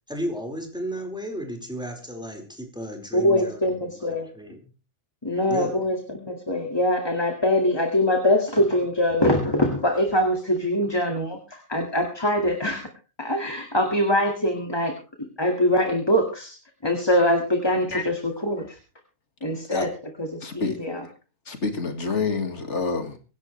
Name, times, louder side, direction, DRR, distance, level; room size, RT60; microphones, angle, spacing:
voice 1, 0.1-4.6 5.5-5.8, equal, 5° right, 2 dB, 4.6 m, -34 dB
voice 2, 3.1-4.3 5.2-12.9 13.2-16.6 16.8-18.8 19.4-19.9 20.2-21.0, left 1 dB, 20° left, 3 dB, 2.1 m, -23 dB
voice 3, 20.4-20.8 21.5-23.2, left 4 dB, 80° left, 6 dB, 2.2 m, -27 dB
24.5 x 11.0 x 3.3 m, 0.34 s
omnidirectional pair, 1.2 m